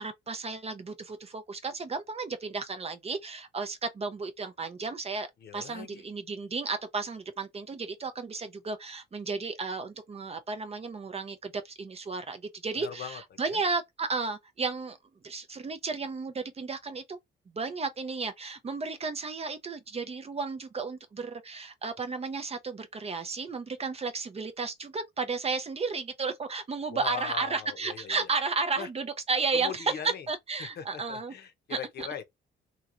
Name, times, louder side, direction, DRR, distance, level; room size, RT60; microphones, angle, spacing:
voice 1, 0.0-5.3 5.5-15.0 15.2-17.2 17.5-31.3 31.7-32.1, right 4 dB, 30° right, 0.5 m, -33 dB
voice 2, 5.4-6.0 12.8-13.2 13.5-13.6 26.9-28.3 28.8-28.9 29.5-30.3 30.6-32.2, left 8 dB, 55° left, 0.7 m, -40 dB
3.0 x 2.7 x 2.5 m
cardioid pair, 90°, 20 cm